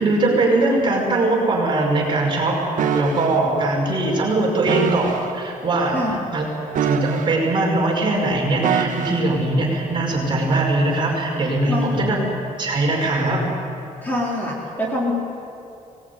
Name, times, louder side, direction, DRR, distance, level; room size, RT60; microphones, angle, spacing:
voice 1, 0.0-6.0 6.3-6.4 6.8-12.2 12.6-13.4, right 2 dB, 35° right, -1 dB, 5.5 m, -21 dB
sound 1, 2.8-3.4 4.7-5.3 6.7-7.6 8.6-9.4 10.5-10.8, right 7 dB, 65° right, 1.5 m, -24 dB
voice 2, 11.7-12.1 14.0-15.1, left 1 dB, 10° left, -3 dB, 4.1 m, -25 dB
23.5 x 19.0 x 9.5 m, 2.7 s
cardioid pair, 155°, 14 cm